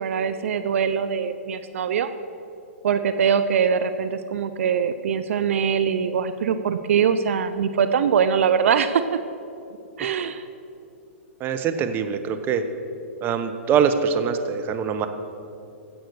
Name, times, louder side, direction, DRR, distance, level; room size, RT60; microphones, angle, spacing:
voice 1, 0.0-2.1 2.8-9.0 10.0-10.4, right 7 dB, 70° right, 11 dB, 0.5 m, -22 dB
voice 2, 11.4-12.6 13.2-15.1, right 7 dB, 30° right, 8 dB, 0.9 m, -23 dB
13.0 x 8.0 x 6.4 m, 2.7 s
hypercardioid pair, 120°, 7 cm